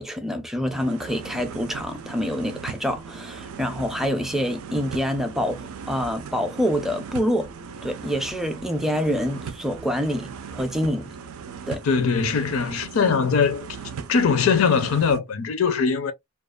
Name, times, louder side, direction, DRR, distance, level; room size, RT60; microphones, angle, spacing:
voice 1, 0.0-7.5 7.8-11.1 11.7-11.8, equal, ahead, 0.4 m, -26 dB
sound 1, 0.7-15.2, right 6 dB, 85° right, 0.4 m, -38 dB
voice 2, 11.8-13.7 14.1-16.1, left 5 dB, 70° left, 0.5 m, -21 dB
2.4 x 2.3 x 2.2 m
head